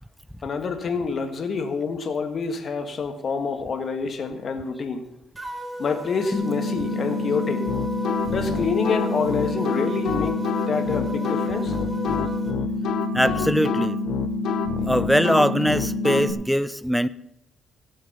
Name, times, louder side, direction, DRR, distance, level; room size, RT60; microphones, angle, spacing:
voice 1, 0.4-5.0 5.8-7.7 8.2-10.4 10.7-11.8, left 5 dB, 50° left, 7 dB, 1.5 m, -27 dB
sound 1, 5.4-12.5, equal, 20° right, 1.7 m, -36 dB
sound 2, 6.3-16.3, left 2 dB, 30° left, 1.3 m, -28 dB
sound 3, 7.6-16.2, left 9 dB, 75° left, 0.8 m, -29 dB
voice 2, 13.1-14.0 14.9-17.1, equal, ahead, 17 dB, 0.5 m, -21 dB
16.0 x 6.5 x 5.5 m, 0.81 s
cardioid pair, 90°, 0 cm